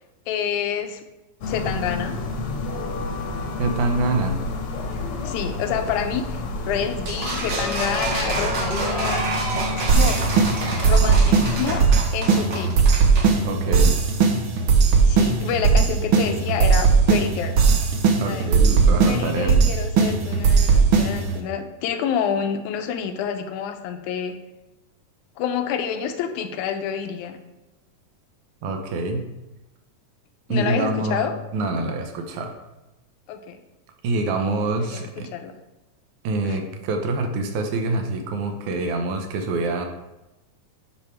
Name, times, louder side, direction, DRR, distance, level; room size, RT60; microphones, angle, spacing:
voice 1, 0.3-1.0 1.5-2.1 5.2-9.3 9.7-10.2 10.8-11.9 12.1-12.7 15.1-17.6 18.2-18.5 19.1-24.4 25.4-27.4 30.5-31.3 33.3-33.6 34.8-35.6 36.4-36.6, left 8 dB, 80° left, 7 dB, 2.1 m, -28 dB
sound 1, 1.4-11.9, left 2 dB, 60° left, 1.6 m, -29 dB
voice 2, 3.6-4.4 13.4-13.9 18.2-19.5 28.6-29.3 30.5-32.5 34.0-35.3 36.2-39.9, right 2 dB, 70° right, 5 dB, 2.3 m, -25 dB
sound 2, 7.1-13.3, right 2 dB, 50° right, 2.6 m, -28 dB
sound 3, 9.9-21.4, right 5 dB, 90° right, 1.1 m, -18 dB
8.8 x 6.3 x 4.4 m, 1.0 s
omnidirectional pair, 3.8 m